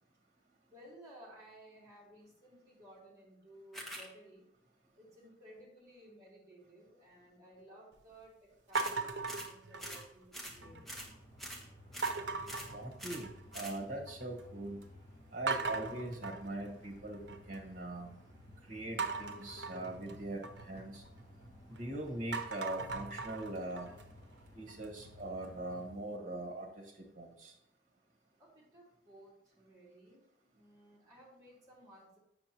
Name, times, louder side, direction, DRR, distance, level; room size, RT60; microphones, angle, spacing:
voice 1, 0.7-4.4 5.0-10.9 28.4-30.2 30.5-32.2, right 1 dB, 20° right, -6 dB, 2.8 m, -57 dB
sound 1, 3.7-4.1 8.7-9.0 9.3-9.5 9.8-10.1 10.3-10.6 10.9-11.1 11.4-11.7 11.9-12.2 12.5-12.7 13.0-13.3 13.5-13.8, equal, ahead, 1.0 m, -45 dB
sound 2, 8.8-10.2 10.6-11.1 12.0-13.6 13.9-14.4 14.8-14.9 15.5-17.6 19.0-21.8 22.2-25.1, right 4 dB, 80° right, 0.7 m, -39 dB
sound 3, 10.4-25.9, left 1 dB, 25° left, 2.0 m, -56 dB
voice 2, 12.7-14.8 15.3-18.2 18.7-21.0 21.7-23.9 24.5-27.5, right 1 dB, 45° right, 0 dB, 1.7 m, -42 dB
7.8 x 6.3 x 3.0 m, 0.78 s
head